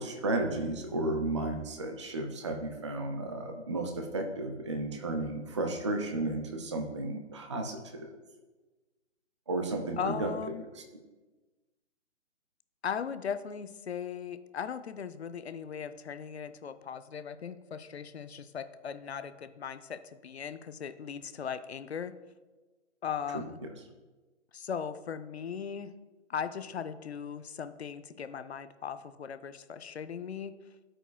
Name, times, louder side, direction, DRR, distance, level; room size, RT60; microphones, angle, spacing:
voice 1, 0.0-8.1 9.5-10.3 23.3-23.4, right 2 dB, 25° right, 4 dB, 0.4 m, -33 dB
voice 2, 10.0-10.6 12.8-22.1 23.0-23.6 24.5-25.9 26.3-30.5, left 7 dB, 60° left, 12 dB, 0.6 m, -38 dB
13.5 x 4.9 x 2.2 m, 1.3 s
figure-of-eight pair, 140°, 37 cm